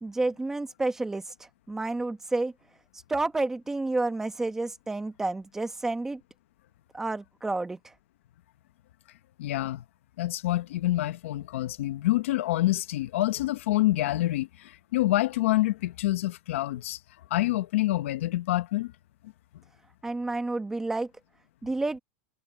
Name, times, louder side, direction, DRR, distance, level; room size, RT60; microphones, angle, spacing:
voice 1, 0.0-1.2 1.7-2.5 3.1-6.2 6.9-7.8 20.0-21.1 21.6-22.0, right 2 dB, 5° right, 1.3 m, -30 dB
voice 2, 9.4-9.8 10.2-17.0 17.3-18.9 19.2-19.3, left 16 dB, 75° left, 1.2 m, -27 dB
supercardioid pair, 165°, 7 cm